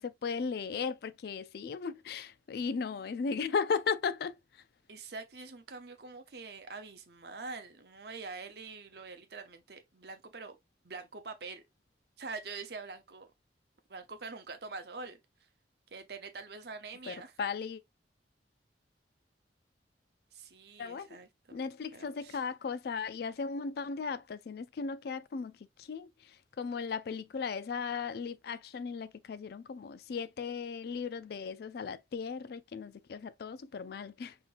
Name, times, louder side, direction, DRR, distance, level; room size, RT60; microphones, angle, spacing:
voice 1, 0.0-4.6 17.1-17.8 20.8-21.2 21.5-25.5 25.8-34.4, left 5 dB, 60° left, 0.4 m, -36 dB
voice 2, 4.9-10.6 10.8-11.6 12.2-13.3 13.9-15.2 15.9-17.3 20.3-21.6 21.9-22.4, right 4 dB, 60° right, 0.7 m, -45 dB
5.5 x 2.9 x 2.5 m
head